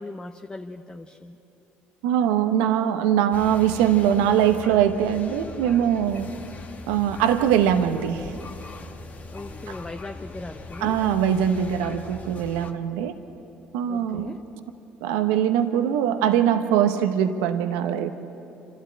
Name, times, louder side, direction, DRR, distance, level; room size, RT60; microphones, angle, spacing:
voice 1, 0.0-1.4 9.3-11.0 13.9-14.4, left 2 dB, 20° left, 3 dB, 1.0 m, -38 dB
voice 2, 2.0-6.3 6.9-8.3 10.8-13.1 13.7-14.3 15.0-18.1, right 9 dB, 90° right, 8 dB, 0.9 m, -22 dB
sound 1, 3.3-12.7, left 3 dB, 40° left, 1.8 m, -41 dB
27.5 x 13.0 x 8.8 m, 3.0 s
supercardioid pair, 75°, 4 cm